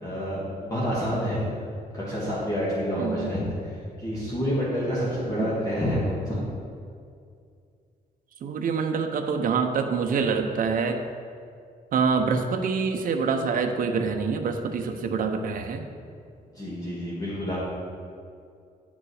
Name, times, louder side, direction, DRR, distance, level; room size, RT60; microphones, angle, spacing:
voice 1, 0.0-1.5 1.9-3.5 4.0-6.4 16.6-17.6, equal, 20° left, -8 dB, 1.8 m, -28 dB
voice 2, 3.0-3.3 5.4-5.5 8.4-11.0 11.9-15.8, right 5 dB, 55° right, 5 dB, 0.8 m, -26 dB
9.9 x 5.3 x 4.8 m, 2.3 s
wide cardioid pair, 170°, 16 cm